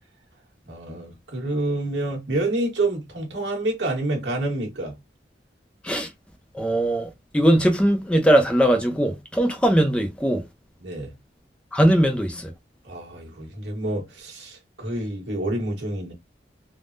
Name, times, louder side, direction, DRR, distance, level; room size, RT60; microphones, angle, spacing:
voice 1, 0.7-5.0 10.8-11.1 12.8-16.1, right 2 dB, 80° right, 1.3 m, -28 dB
voice 2, 6.5-10.4 11.7-12.5, right 1 dB, 5° left, 0.6 m, -20 dB
3.5 x 2.1 x 2.5 m
head